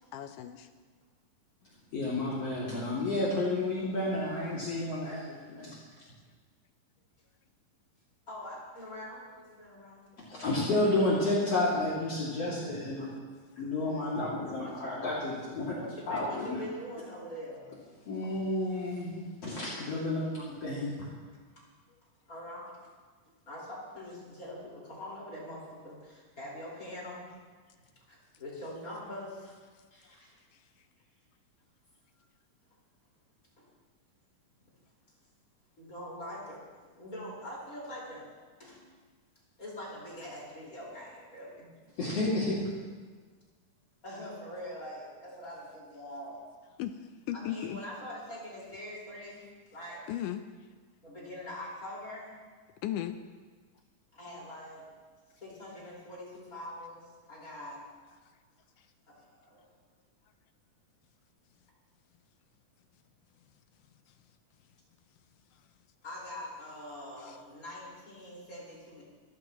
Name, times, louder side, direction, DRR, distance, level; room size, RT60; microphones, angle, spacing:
voice 1, 0.1-0.7 13.5-13.6 30.0-30.2 46.8-47.8 50.1-50.4 52.8-53.2 58.8-58.9 67.2-67.4, left 11 dB, 80° left, 8 dB, 2.2 m, -36 dB
voice 2, 1.9-5.7 10.2-13.1 13.6-15.7 16.1-16.6 18.1-21.0 42.0-42.6, left 2 dB, 50° left, -7 dB, 3.4 m, -31 dB
voice 3, 8.3-10.6 13.5-13.6 13.9-14.0 14.5-15.1 15.7-17.7 21.6-21.7 22.3-22.6 23.5-27.3 28.1-29.6 29.9-30.4 33.6-33.7 35.8-36.6 36.9-38.3 38.6-38.9 39.6-41.7 44.0-46.4 47.3-49.5 49.7-50.0 51.0-52.4 54.1-54.9 55.3-57.8 59.1-59.6 66.0-69.0, left 1 dB, 25° left, -5 dB, 5.1 m, -44 dB
26.0 x 15.0 x 3.0 m, 1.5 s
omnidirectional pair, 3.7 m